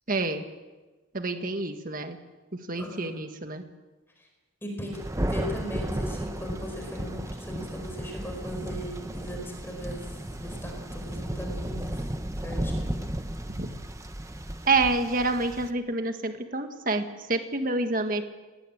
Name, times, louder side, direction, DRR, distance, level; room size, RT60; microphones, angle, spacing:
voice 1, 0.1-0.4 1.1-2.2 2.5-3.6 13.6-13.7 14.7-18.2, right 3 dB, 40° right, 6 dB, 1.7 m, -28 dB
voice 2, 2.8-3.1 4.2-4.3 4.6-13.1, equal, 10° left, 1 dB, 4.8 m, -39 dB
Thunder, 4.9-15.7, right 1 dB, 15° right, 0.9 m, -34 dB
20.5 x 19.5 x 8.7 m, 1.2 s
head